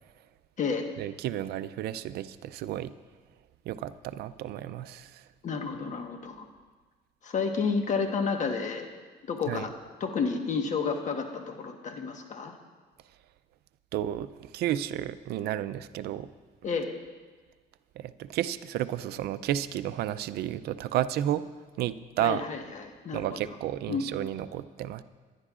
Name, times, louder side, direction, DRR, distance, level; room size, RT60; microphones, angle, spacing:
voice 1, 1.0-2.9 3.7-5.3 9.5-9.7 13.9-16.3 18.0-21.5 21.8-22.4 23.1-25.0, right 12 dB, 70° right, 14 dB, 0.5 m, -32 dB
voice 2, 5.4-6.4 7.2-8.9 9.3-9.7 10.0-12.6 16.6-16.9 22.2-23.4 23.9-24.1, left 5 dB, 45° left, 4 dB, 1.3 m, -31 dB
22.0 x 11.0 x 2.5 m, 1.4 s
cardioid pair, 110°, 17 cm